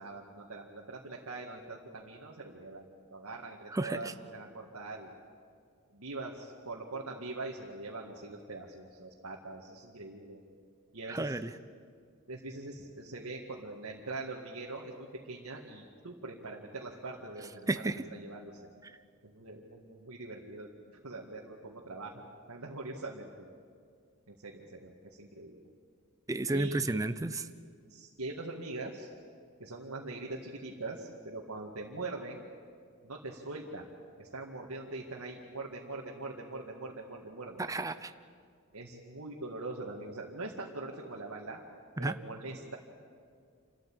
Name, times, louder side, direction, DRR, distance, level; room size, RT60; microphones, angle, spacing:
voice 1, 0.0-5.1 5.9-10.4 10.9-11.4 12.3-18.7 19.2-23.5 24.3-25.6 26.5-26.8 27.9-29.1 29.6-32.4 33.0-33.9 34.2-37.6 38.7-41.6 42.0-42.8, right 2 dB, 80° right, -2 dB, 2.0 m, -43 dB
voice 2, 3.7-4.1 11.1-11.5 17.7-18.0 26.3-27.5 37.6-38.1 42.0-42.2, right 2 dB, 15° right, 11 dB, 0.6 m, -32 dB
28.0 x 13.5 x 8.8 m, 2.2 s
head